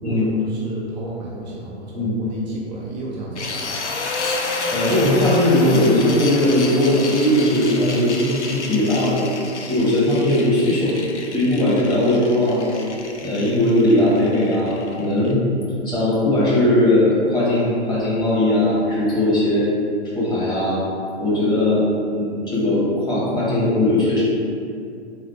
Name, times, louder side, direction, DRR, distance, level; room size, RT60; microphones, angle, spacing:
voice 1, 0.0-3.7, right 2 dB, 40° right, -4 dB, 0.6 m, -33 dB
voice 2, 1.9-2.5 4.7-9.2 9.6-10.9 11.3-12.8 13.2-15.4 15.8-19.7 20.1-20.8 21.2-21.8 22.1-24.2, left 1 dB, 15° left, -8 dB, 1.5 m, -19 dB
sound 1, 3.4-15.3, left 3 dB, 80° left, 0.6 m, -30 dB
4.1 x 3.8 x 3.3 m, 2.4 s
figure-of-eight pair, 105°, 34 cm